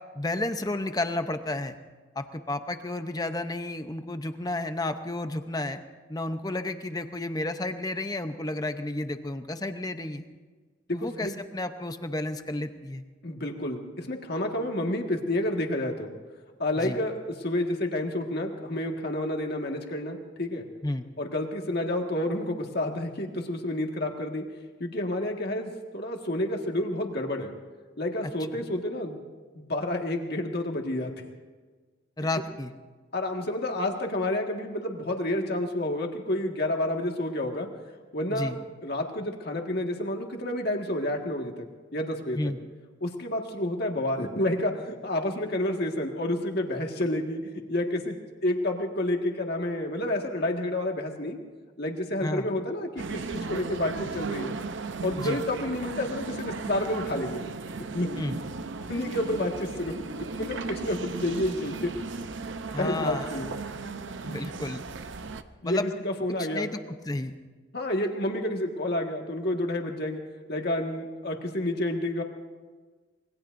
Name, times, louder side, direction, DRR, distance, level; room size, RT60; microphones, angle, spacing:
voice 1, 0.1-1.8 2.2-5.8 6.1-10.3 10.9-13.0 16.7-17.0 20.8-21.1 32.2-32.7 38.3-38.6 42.3-42.6 52.2-52.5 55.2-55.4 58.2-58.4 62.7-63.4 64.2-64.8 65.6-65.9 66.4-66.8 67.1-67.3, left 2 dB, 20° left, 8 dB, 0.7 m, -32 dB
voice 2, 10.9-11.3 13.2-16.1 16.6-20.7 21.2-24.4 24.8-27.6 28.0-29.2 29.7-31.1 33.1-37.7 38.1-38.5 38.8-41.7 41.9-42.5 43.0-47.4 47.7-48.2 48.4-51.4 51.8-54.6 55.0-57.4 57.9-58.1 58.9-61.9 62.8-63.5 65.6-66.7 67.7-70.2 70.5-72.2, left 1 dB, 50° left, 2 dB, 1.8 m, -29 dB
sound 1, 53.0-65.4, right 4 dB, 65° right, 0.7 m, -36 dB
26.0 x 21.0 x 2.6 m, 1.4 s
head